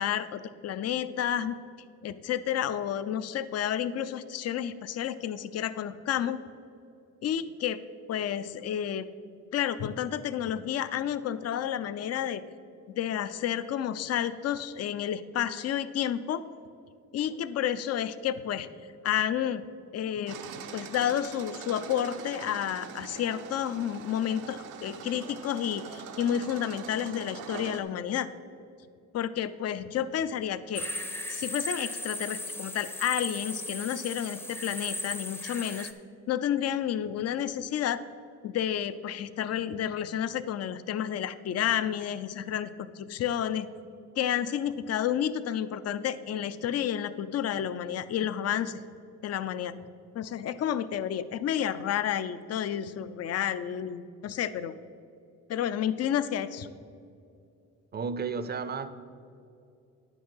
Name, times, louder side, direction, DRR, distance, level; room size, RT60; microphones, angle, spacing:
voice 1, 0.0-1.6 2.0-6.4 7.2-7.8 8.1-9.1 9.5-12.4 13.0-16.4 17.1-18.7 19.0-19.6 19.9-20.4 20.7-28.3 29.1-30.9 31.3-35.9 36.3-38.0 38.4-43.7 44.2-48.8 49.2-49.7 50.1-54.7 55.5-56.7, left 10 dB, 55° left, 0.5 m, -30 dB
sound 1, 20.3-27.8, right 6 dB, 85° right, 0.8 m, -43 dB
sound 2, 30.7-35.9, left 1 dB, 5° left, 0.6 m, -36 dB
voice 2, 57.9-58.9, right 5 dB, 35° right, 0.6 m, -32 dB
9.5 x 6.1 x 5.5 m
cardioid pair, 90°, 30 cm